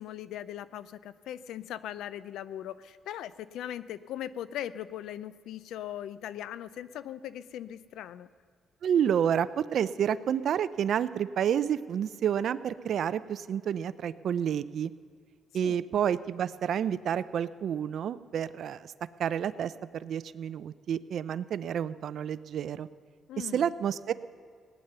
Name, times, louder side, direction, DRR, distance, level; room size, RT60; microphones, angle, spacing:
voice 1, 0.0-8.3 15.6-15.8 23.3-23.7, left 11 dB, 85° left, 16 dB, 0.5 m, -39 dB
voice 2, 8.8-14.9 15.5-18.9 19.2-22.9 23.4-24.1, right 9 dB, 65° right, 16 dB, 0.5 m, -29 dB
18.0 x 9.6 x 6.8 m, 2.1 s
cardioid pair, 90°, 0 cm